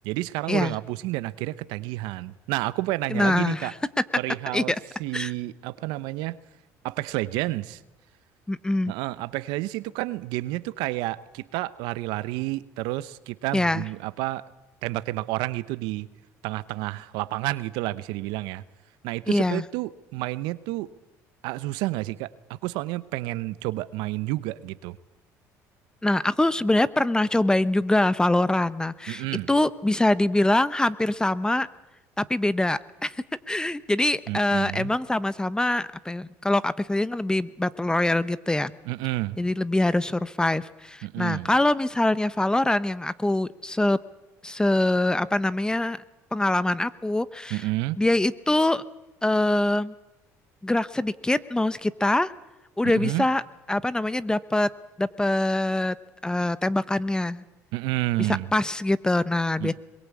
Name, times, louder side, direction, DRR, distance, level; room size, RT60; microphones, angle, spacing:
voice 1, 0.0-3.7 4.1-4.7 5.0-6.4 6.8-7.8 8.9-14.4 14.8-16.1 16.4-18.6 19.0-20.9 21.4-25.0 29.1-29.5 34.3-34.9 38.8-39.4 41.0-41.5 47.5-48.0 52.8-53.2 57.7-58.5 59.6-59.7, right 18 dB, 75° right, 16 dB, 0.8 m, -30 dB
voice 2, 3.1-3.7 4.5-4.8 5.1-5.3 8.5-8.9 13.5-13.8 19.3-19.6 26.0-31.7 32.2-33.2 33.5-38.7 39.4-44.0 44.4-46.0 46.3-47.6 48.0-48.8 49.2-49.9 50.6-52.3 52.8-53.4 53.7-54.7 55.0-56.0 56.2-57.4 58.3-59.7, left 1 dB, 10° left, 17 dB, 0.8 m, -24 dB
22.0 x 21.5 x 8.4 m, 1.0 s
supercardioid pair, 80°, 8 cm